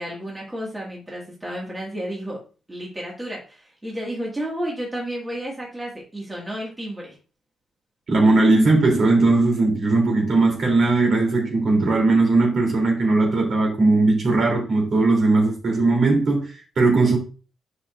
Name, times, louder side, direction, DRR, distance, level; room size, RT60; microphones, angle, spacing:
voice 1, 0.0-2.4 2.7-7.2, equal, 10° right, 1.9 m, -32 dB
voice 2, 8.1-17.2, right 3 dB, 45° right, 3.1 m, -18 dB
9.8 x 5.9 x 2.5 m
wide cardioid pair, 160°, 0 cm